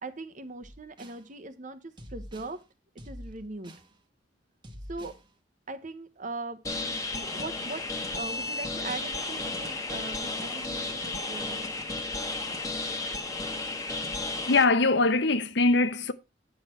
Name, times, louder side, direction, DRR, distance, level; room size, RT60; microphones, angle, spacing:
voice 1, 0.0-2.6 3.0-3.7 4.9-5.2 5.7-7.8 8.1-11.7, right 3 dB, 45° right, 1.0 m, -40 dB
sound 1, 0.6-1.2 2.0-2.6 3.0-3.9 4.6-5.2, equal, 25° right, 1.1 m, -45 dB
sound 2, 6.6-14.6, left 2 dB, 20° left, 1.3 m, -33 dB
voice 2, 14.5-16.1, left 3 dB, 65° left, 0.8 m, -22 dB
9.5 x 6.3 x 4.3 m
head